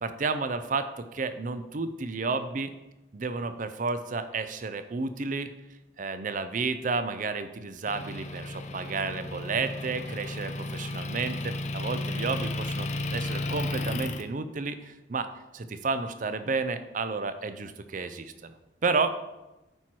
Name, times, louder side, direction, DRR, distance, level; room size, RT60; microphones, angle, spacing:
voice 1, 0.0-2.7 3.1-5.5 6.0-18.5 18.8-19.2, right 4 dB, 45° right, 10 dB, 0.5 m, -31 dB
Motor vehicle (road) / Engine, 7.9-14.2, left 2 dB, 40° left, 0.5 m, -33 dB
9.8 x 4.5 x 4.6 m, 1.0 s
head